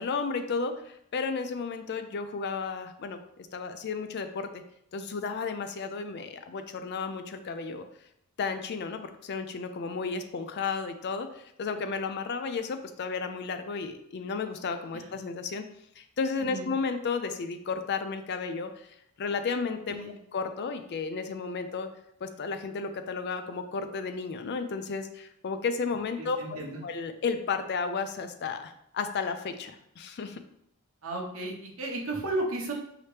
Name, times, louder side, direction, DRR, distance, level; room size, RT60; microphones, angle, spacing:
voice 1, 0.0-4.6 4.9-7.9 8.4-15.7 16.0-18.7 19.2-19.9 20.3-21.9 22.2-30.4, left 4 dB, 50° left, 8 dB, 0.4 m, -33 dB
voice 2, 26.2-26.8 31.0-32.7, right 2 dB, 70° right, -1 dB, 0.9 m, -34 dB
4.8 x 2.9 x 3.2 m, 0.74 s
head